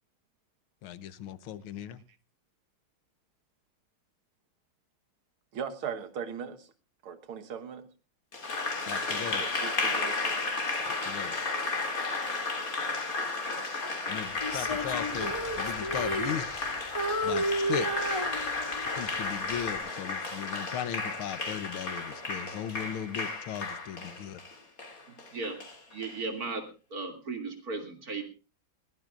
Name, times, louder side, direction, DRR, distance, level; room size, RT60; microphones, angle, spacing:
voice 1, 0.8-2.0 8.9-9.4 10.9-11.3 14.1-16.6 17.2-18.3 19.0-24.4, left 9 dB, 85° left, 1.8 m, -37 dB
voice 2, 5.5-6.7 7.0-7.9 9.4-10.3, right 7 dB, 90° right, 2.2 m, -38 dB
Applause, 8.3-26.1, left 3 dB, 40° left, 3.2 m, -33 dB
Female singing, 14.4-16.7 16.9-19.0 19.5-19.8, right 1 dB, 15° left, 2.6 m, -32 dB
voice 3, 25.1-25.6 25.9-26.6 26.9-28.2, right 3 dB, 45° right, 3.1 m, -36 dB
21.0 x 17.0 x 2.5 m
omnidirectional pair, 2.2 m